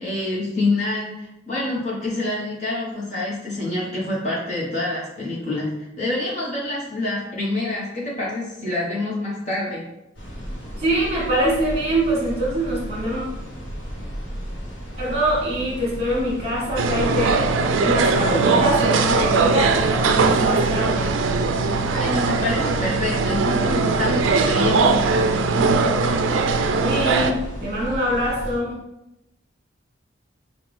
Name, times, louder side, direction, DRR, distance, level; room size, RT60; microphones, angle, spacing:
voice 1, 0.0-9.8 21.9-25.0, left 2 dB, 35° left, -6 dB, 1.1 m, -26 dB
sound 1, 10.1-28.6, equal, 70° left, 1.0 m, -34 dB
voice 2, 10.8-13.2 15.0-17.4 17.8-21.1 26.8-28.7, right 1 dB, 30° right, -5 dB, 1.6 m, -24 dB
sound 2, 16.8-27.3, right 4 dB, 80° right, 0.4 m, -20 dB
5.6 x 2.5 x 3.2 m, 0.92 s
head